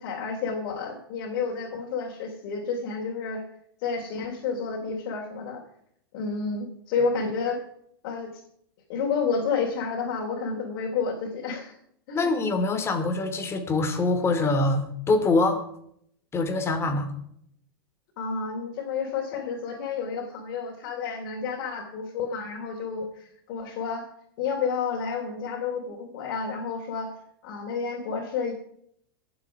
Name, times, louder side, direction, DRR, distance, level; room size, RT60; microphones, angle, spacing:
voice 1, 0.0-3.4 3.8-5.6 6.1-7.6 8.0-8.3 8.9-11.8 12.1-12.3 18.2-24.0 24.4-27.1 27.4-28.5, left 5 dB, 55° left, -2 dB, 3.5 m, -30 dB
voice 2, 12.1-15.6 16.3-17.1, left 3 dB, 20° left, 6 dB, 2.6 m, -24 dB
22.0 x 7.9 x 4.9 m, 0.69 s
hypercardioid pair, 120°, 12 cm